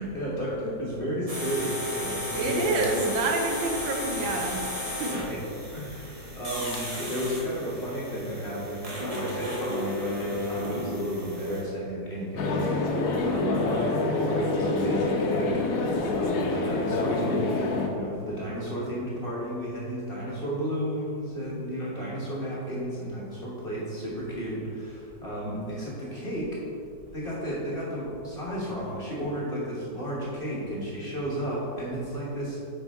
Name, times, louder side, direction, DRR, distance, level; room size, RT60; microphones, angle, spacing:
voice 1, 0.0-2.8 4.0-4.2 5.1-5.4 5.7-15.6 16.0-26.6 27.1-32.6, equal, 35° left, -6 dB, 1.2 m, -33 dB
sound 1, 1.3-11.6, left 1 dB, 20° right, 1.2 m, -34 dB
voice 2, 2.3-4.7 5.0-5.2, right 3 dB, 80° right, 3 dB, 1.5 m, -28 dB
Bicycle / Mechanisms, 2.7-3.7 6.6-7.6, left 4 dB, 80° left, 0.6 m, -46 dB
sound 2, 12.4-17.9, left 2 dB, 65° left, 0.9 m, -26 dB
9.0 x 4.4 x 3.5 m, 2.7 s
omnidirectional pair, 2.1 m